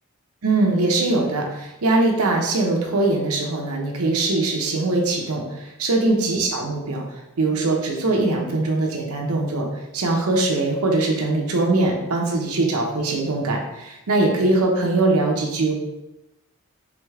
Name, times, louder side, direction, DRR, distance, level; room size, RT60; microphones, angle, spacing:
voice 1, 0.4-7.0 7.4-9.7 9.9-15.7, right 2 dB, 85° right, 0 dB, 0.7 m, -21 dB
3.5 x 3.3 x 3.5 m, 0.93 s
head